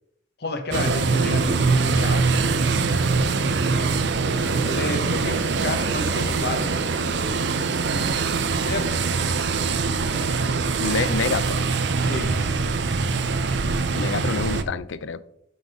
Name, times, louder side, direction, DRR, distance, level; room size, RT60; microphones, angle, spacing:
voice 1, 0.4-2.8 4.6-6.7 8.6-9.1 12.0-12.4, left 2 dB, 55° left, 5 dB, 1.2 m, -31 dB
sound 1, 0.7-14.6, right 4 dB, 65° right, 0.6 m, -23 dB
voice 2, 10.8-11.6 13.9-15.2, left 5 dB, 75° left, 16 dB, 0.5 m, -27 dB
11.0 x 4.0 x 5.0 m, 0.76 s
head